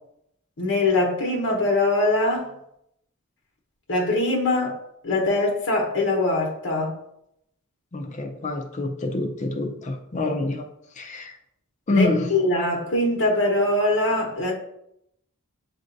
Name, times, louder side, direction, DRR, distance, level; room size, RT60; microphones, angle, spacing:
voice 1, 0.6-2.5 3.9-4.8 5.0-6.9 11.9-14.5, left 2 dB, 60° left, 1.0 m, -22 dB
voice 2, 7.9-10.7 11.0-11.4 11.9-12.3, left 2 dB, 35° left, 0.5 m, -26 dB
7.6 x 2.6 x 2.6 m
head